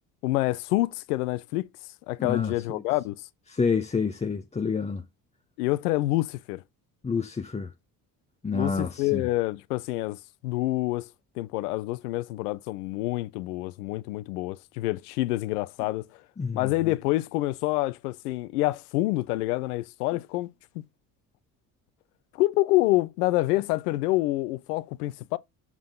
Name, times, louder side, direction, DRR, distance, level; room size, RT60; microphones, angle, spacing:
voice 1, 0.2-1.7 2.1-3.3 5.6-6.6 8.5-11.1 11.4-16.1 16.5-20.5 22.3-25.4, left 18 dB, 90° left, 0.6 m, -27 dB
voice 2, 2.2-2.8 3.5-5.1 7.0-7.7 8.4-9.2 16.4-16.7, left 5 dB, 15° left, 0.7 m, -28 dB
7.3 x 3.7 x 3.7 m
hypercardioid pair, 60°, 44 cm